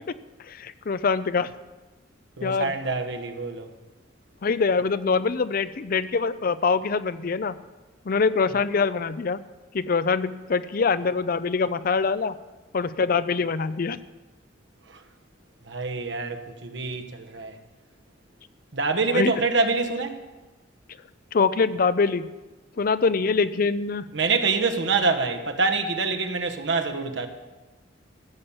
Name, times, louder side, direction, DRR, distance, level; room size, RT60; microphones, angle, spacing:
voice 1, 0.5-1.5 2.4-2.7 4.4-7.5 8.0-9.4 9.7-12.3 12.7-14.0 19.1-19.3 21.3-22.3 22.8-24.1, left 5 dB, 50° left, 0.5 m, -24 dB
voice 2, 2.4-3.7 14.9-15.0 15.7-17.6 18.7-20.2 24.1-27.3, right 4 dB, 70° right, 1.2 m, -26 dB
15.0 x 7.2 x 7.1 m
head